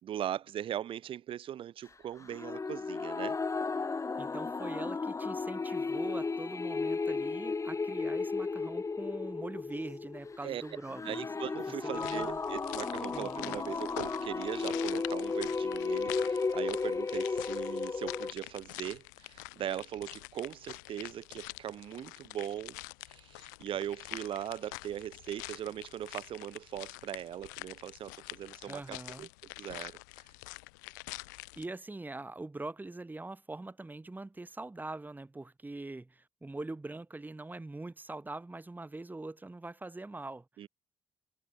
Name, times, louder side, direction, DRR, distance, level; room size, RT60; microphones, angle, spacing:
voice 1, 0.0-3.4 10.4-10.6 11.0-29.3 29.6-30.0 40.6-40.7, right 10 dB, 65° right, 3.9 m, -40 dB
sound 1, 2.3-18.3, left 4 dB, 30° left, 2.4 m, -34 dB
voice 2, 4.2-11.3 11.8-12.4 13.1-13.5 28.7-29.3 31.6-40.4, right 2 dB, 20° right, 3.0 m, -43 dB
sound 2, 11.9-31.7, left 26 dB, 90° left, 1.5 m, -46 dB
hypercardioid pair, 50°, 10 cm